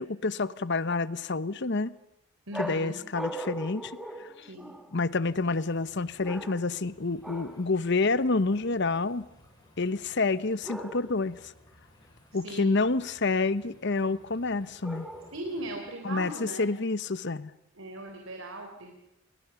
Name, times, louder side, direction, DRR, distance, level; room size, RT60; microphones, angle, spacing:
voice 1, 0.0-1.9 2.6-4.5 4.9-9.2 9.8-11.5 12.3-15.1 16.0-17.5, left 3 dB, 55° left, 16 dB, 0.9 m, -28 dB
sound 1, 2.5-5.0 6.2-6.8 7.2-7.7 10.6-11.3 14.8-15.6, right 1 dB, ahead, 1.5 m, -39 dB
voice 2, 2.5-3.0 4.5-4.7 12.4-12.8 15.3-16.7 17.7-19.0, right 1 dB, 70° right, 4 dB, 3.7 m, -39 dB
sound 2, 5.2-15.8, equal, 20° left, 6.0 m, -58 dB
29.5 x 22.0 x 7.0 m, 0.86 s
head